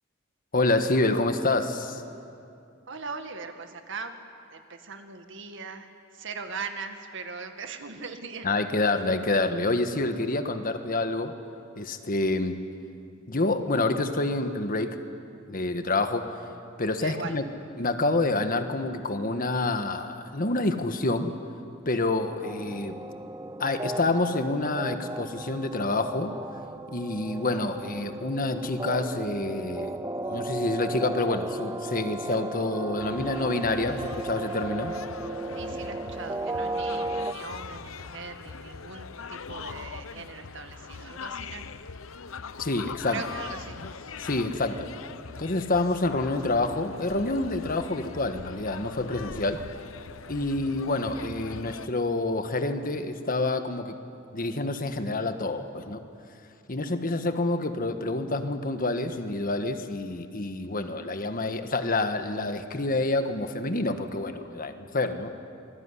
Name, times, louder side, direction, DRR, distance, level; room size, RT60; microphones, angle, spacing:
voice 1, 0.5-2.0 8.4-11.3 11.8-12.6 13.3-15.0 15.5-16.3 16.8-17.4 17.8-21.3 21.8-23.0 23.6-26.3 26.9-35.0 42.6-43.2 44.2-44.9 45.4-49.6 50.3-53.9 54.3-56.0 56.7-65.3, left 2 dB, 45° left, 7 dB, 1.6 m, -27 dB
voice 2, 2.9-4.1 4.5-8.5 17.0-17.4 35.6-41.7 43.1-43.8, right 4 dB, 65° right, 6 dB, 2.0 m, -40 dB
sound 1, 22.4-37.3, right 2 dB, 15° right, 0.7 m, -35 dB
sound 2, 33.0-51.9, left 5 dB, 85° left, 0.8 m, -41 dB
27.0 x 21.0 x 9.9 m, 2.5 s
head